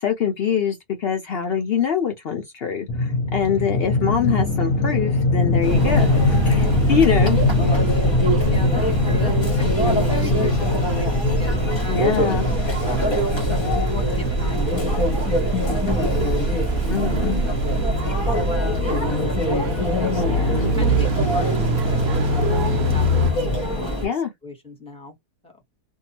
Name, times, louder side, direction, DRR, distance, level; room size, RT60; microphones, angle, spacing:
voice 1, 0.0-7.4 11.9-12.5 16.9-17.4 20.3-20.7 24.0-24.3, left 7 dB, 75° left, 0.5 m, -24 dB
sound 1, 2.9-15.1, left 2 dB, 60° left, 0.9 m, -22 dB
voice 2, 3.3-3.7 6.8-7.1 7.8-9.3 9.6-13.2 13.9-16.8 17.2-18.2 18.9-23.6 23.8-25.2 25.4-25.6, left 2 dB, 5° left, 1.0 m, -38 dB
Conversation / Chatter / Crowd, 5.6-24.1, equal, 25° left, 0.7 m, -24 dB
sound 2, 5.6-23.3, right 2 dB, 75° right, 0.5 m, -26 dB
2.7 x 2.3 x 2.8 m
omnidirectional pair, 1.7 m